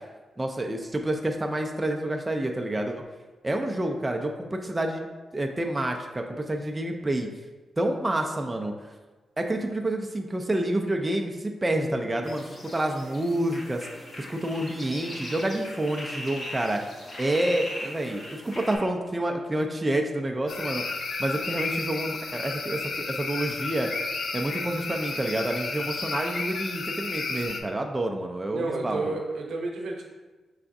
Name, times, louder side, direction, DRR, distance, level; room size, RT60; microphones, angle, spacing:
voice 1, 0.4-3.0 3.4-5.0 5.3-7.3 7.8-8.7 9.4-16.8 17.2-23.9 24.3-29.2, right 1 dB, 20° right, 2 dB, 0.4 m, -28 dB
sound 1, 12.2-18.8, left 1 dB, 45° left, 1.0 m, -39 dB
sound 2, 20.5-27.6, left 3 dB, 70° left, 0.4 m, -32 dB
voice 2, 28.5-30.0, right 3 dB, 80° right, 0 dB, 0.7 m, -31 dB
4.8 x 3.3 x 2.6 m, 1.3 s
cardioid pair, 90°, 0 cm